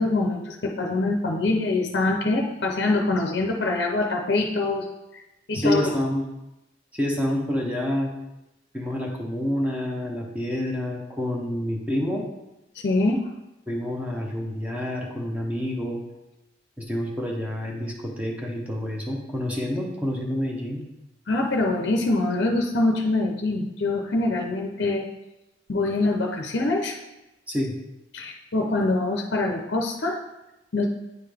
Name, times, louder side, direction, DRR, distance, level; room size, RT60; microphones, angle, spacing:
voice 1, 0.0-4.9 5.1-5.2 5.5-5.9 12.7-13.2 21.3-25.0 25.7-27.0 28.1-30.2 30.7-30.8, left 2 dB, 55° left, 1 dB, 0.6 m, -24 dB
voice 2, 5.5-6.3 6.9-8.1 8.7-12.2 13.7-16.0 16.8-20.8 27.5-27.7, equal, 5° right, -1 dB, 0.7 m, -28 dB
9.1 x 3.8 x 3.4 m, 0.95 s
head